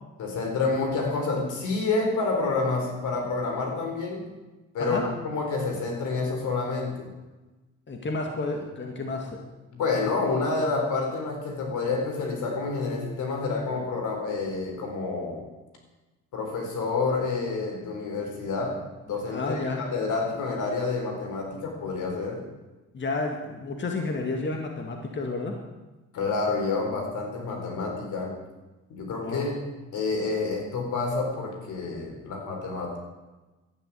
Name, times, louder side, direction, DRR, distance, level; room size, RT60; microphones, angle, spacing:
voice 1, 0.2-4.3 4.7-7.1 9.7-15.4 16.3-22.4 26.1-28.4 28.9-29.5 29.9-33.0, left 3 dB, 80° left, 2 dB, 4.2 m, -28 dB
voice 2, 7.9-9.4 19.3-19.9 22.9-25.6 29.2-29.6, left 3 dB, 40° left, 2 dB, 2.1 m, -31 dB
12.0 x 9.7 x 9.4 m, 1.1 s
cardioid pair, 90°, 30 cm